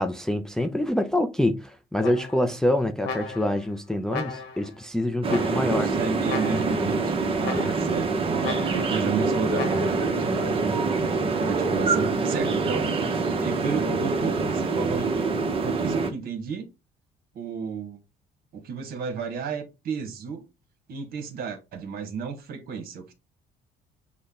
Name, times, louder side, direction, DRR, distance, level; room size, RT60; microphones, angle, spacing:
voice 1, 0.0-5.9 11.6-11.7, left 1 dB, 5° left, 0.4 m, -26 dB
sound 1, 2.0-2.6 3.0-3.7 4.1-4.7 5.3-5.9 6.3-6.9 7.4-8.0 8.4-9.0 9.5-10.1, left 5 dB, 80° left, 1.1 m, -36 dB
sound 2, 5.2-16.1, right 3 dB, 35° right, 0.9 m, -25 dB
voice 2, 5.6-10.8 11.4-12.9 13.4-16.7 17.3-18.0 18.5-20.4 20.9-23.1, right 6 dB, 60° right, 1.2 m, -33 dB
6.2 x 2.2 x 3.5 m
cardioid pair, 110°, 17 cm